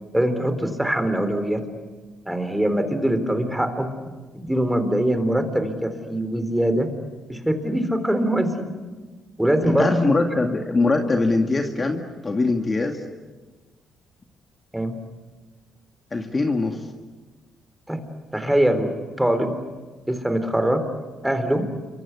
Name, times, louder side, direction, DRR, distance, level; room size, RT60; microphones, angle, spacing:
voice 1, 0.1-1.6 2.3-3.9 4.3-6.9 7.3-8.7 9.4-10.0 14.7-15.0 17.9-18.1 18.3-19.5 20.1-20.8 21.2-21.7, right 1 dB, 5° right, 8 dB, 3.9 m, -22 dB
voice 2, 9.8-13.0 16.1-16.9, left 3 dB, 30° left, 3 dB, 2.2 m, -22 dB
28.0 x 25.0 x 8.4 m, 1.3 s
cardioid pair, 90°, 0 cm